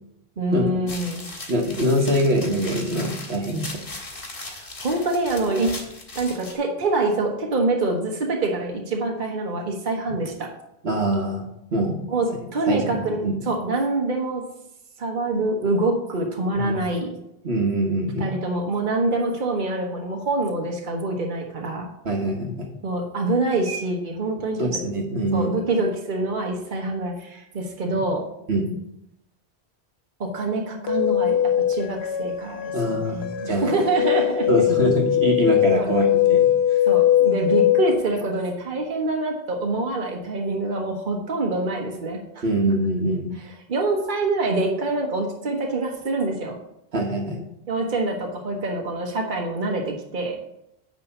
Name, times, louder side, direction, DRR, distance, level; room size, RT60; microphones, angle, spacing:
voice 1, 0.4-1.3 4.4-5.7 6.1-10.5 12.1-14.4 15.0-17.1 18.2-21.9 22.8-24.8 25.3-28.2 30.2-34.6 35.8-35.9 36.9-42.4 43.7-46.6 47.7-50.4, right 2 dB, 50° right, 1 dB, 1.3 m, -25 dB
sound 1, 0.9-6.5, left 2 dB, 55° left, 1.9 m, -38 dB
voice 2, 1.5-3.8 10.8-12.0 12.7-13.4 16.6-16.8 17.4-18.3 22.0-22.7 24.6-25.5 27.9-28.0 28.5-28.7 32.7-33.8 34.5-36.5 42.4-43.3 46.9-47.4, right 1 dB, 75° right, 2 dB, 1.5 m, -24 dB
sound 2, 30.9-38.0, left 11 dB, 75° left, 0.9 m, -21 dB
9.7 x 3.5 x 6.8 m, 0.81 s
omnidirectional pair, 1.1 m